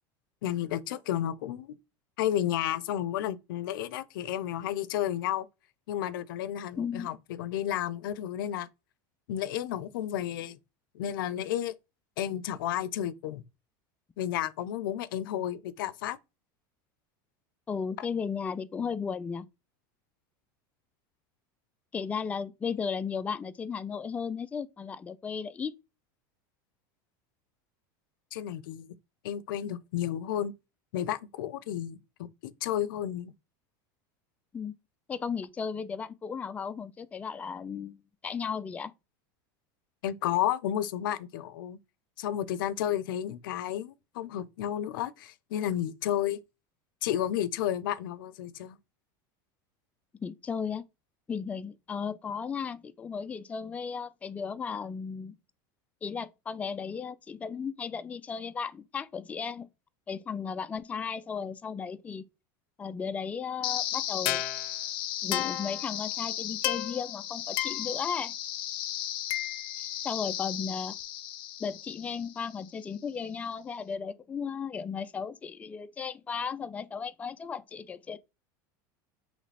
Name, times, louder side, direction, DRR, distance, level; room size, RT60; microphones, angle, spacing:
voice 1, 0.4-1.7 2.2-5.5 5.9-8.7 9.3-10.6 10.9-11.7 12.2-13.4 14.2-16.2 18.0-18.1 28.3-28.9 29.2-30.5 30.9-33.3 40.0-41.8 42.2-46.4 47.0-48.8, left 11 dB, 90° left, 0.5 m, -32 dB
voice 2, 6.8-7.1 17.7-19.5 21.9-25.7 34.5-34.7 35.1-38.9 50.2-50.8 51.3-55.4 56.0-59.7 60.1-62.2 62.8-64.4 65.2-68.3 69.8-70.9 71.6-78.2, left 6 dB, 15° left, 0.3 m, -35 dB
sound 1, 63.6-72.7, left 12 dB, 50° left, 0.6 m, -34 dB
3.2 x 3.1 x 4.1 m
supercardioid pair, 145°, 11 cm